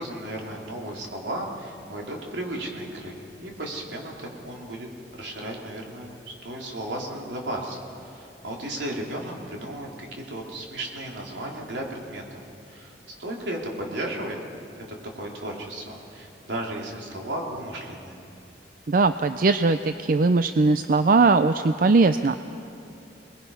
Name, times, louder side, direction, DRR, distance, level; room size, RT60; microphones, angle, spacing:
voice 1, 0.0-4.9 5.1-12.9 13.2-14.4 14.9-18.2, right 1 dB, 80° right, -1 dB, 3.4 m, -34 dB
voice 2, 18.9-22.4, right 3 dB, 50° right, 10 dB, 0.5 m, -20 dB
28.0 x 20.5 x 5.6 m, 2.6 s
head